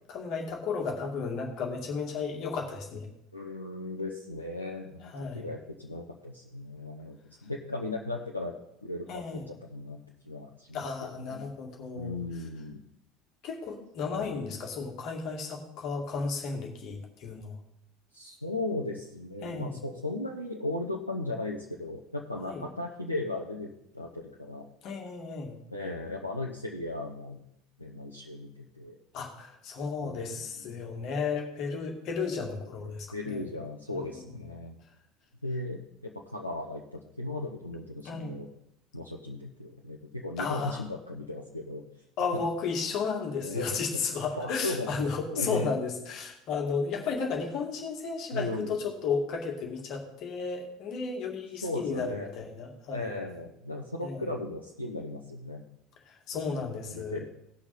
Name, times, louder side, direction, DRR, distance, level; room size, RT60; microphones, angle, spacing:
voice 1, 0.1-3.1 5.0-5.5 9.1-9.5 10.7-12.2 13.4-17.6 19.4-19.8 22.4-22.6 24.8-25.5 29.1-33.4 33.9-34.0 38.0-38.3 40.4-40.8 42.2-53.2 54.0-54.2 56.1-57.2, left 5 dB, 45° left, 1 dB, 2.2 m, -33 dB
voice 2, 3.3-10.0 10.3-11.5 11.9-12.8 14.1-14.4 18.1-24.7 25.7-27.4 27.8-29.0 30.0-30.8 32.8-34.7 35.4-38.5 38.9-41.8 42.3-42.4 43.3-44.0 44.4-44.9 45.3-45.7 48.3-48.8 51.6-52.3 52.9-55.6 56.9-57.2, left 2 dB, 85° left, -1 dB, 0.8 m, -37 dB
18.0 x 6.0 x 4.1 m, 0.79 s
figure-of-eight pair, 70°, 0 cm